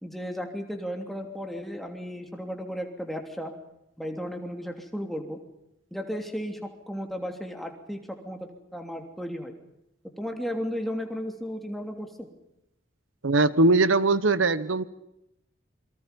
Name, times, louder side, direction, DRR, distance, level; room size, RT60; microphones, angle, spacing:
voice 1, 0.0-3.5 4.0-5.4 5.9-9.5 10.2-12.3, equal, ahead, 3 dB, 3.0 m, -34 dB
voice 2, 13.2-14.8, right 2 dB, 85° right, 15 dB, 1.1 m, -21 dB
28.5 x 24.0 x 5.4 m, 0.83 s
head